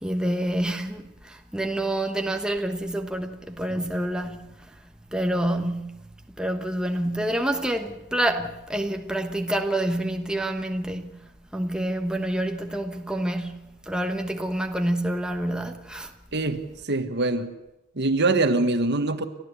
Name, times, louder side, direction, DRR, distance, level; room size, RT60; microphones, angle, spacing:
voice 1, 0.0-4.7 5.1-6.1 6.4-16.1, right 1 dB, 5° right, 1.2 m, -28 dB
voice 2, 16.3-17.6 18.0-19.2, right 2 dB, 55° right, 1.5 m, -24 dB
30.0 x 13.5 x 8.3 m
head